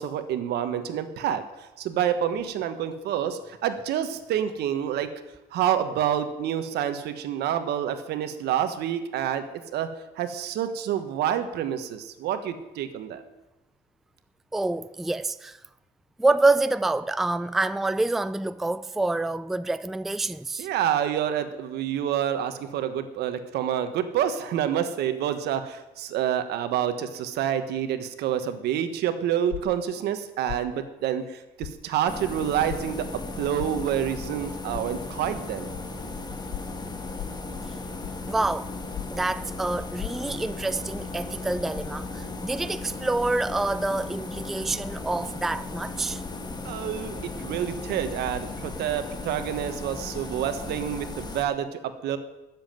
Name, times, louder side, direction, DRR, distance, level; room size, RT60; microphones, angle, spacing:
voice 1, 0.0-1.4 1.8-5.1 5.5-9.4 9.7-9.9 10.2-13.2 20.6-33.0 33.4-35.7 46.6-52.2, right 10 dB, 80° right, 1.4 m, -28 dB
voice 2, 14.5-15.6 16.2-20.7 38.3-38.7 39.1-46.2, right 2 dB, ahead, 0.3 m, -27 dB
sound 1, 29.5-29.8 30.5-30.7 31.6-31.8 32.7-32.8 33.6-33.8 34.7-34.9 35.7-35.8 36.5-36.7 37.2-37.4 38.0-38.3 38.9-39.2 40.0-40.1, left 14 dB, 65° left, 0.7 m, -36 dB
sound 2, 32.1-51.4, left 3 dB, 25° left, 1.5 m, -36 dB
13.0 x 7.5 x 9.2 m
cardioid pair, 110°, 17 cm